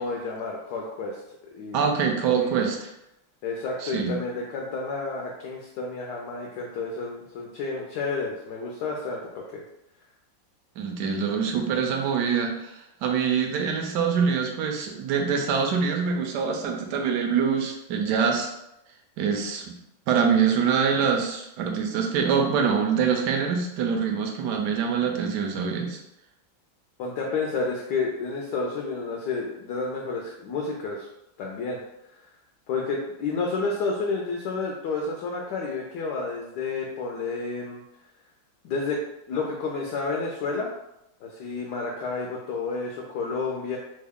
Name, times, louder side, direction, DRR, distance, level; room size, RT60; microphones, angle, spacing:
voice 1, 0.0-2.5 3.4-9.2 9.5-9.6 27.0-31.1 31.4-31.8 32.7-37.8 38.6-39.0 39.3-40.7 41.2-43.8, left 4 dB, 75° left, -1 dB, 1.0 m, -30 dB
voice 2, 1.7-2.9 3.8-4.2 10.8-18.5 19.2-19.7 20.1-26.0, right 6 dB, 75° right, 2 dB, 1.0 m, -25 dB
3.4 x 2.2 x 3.5 m, 0.85 s
omnidirectional pair, 2.1 m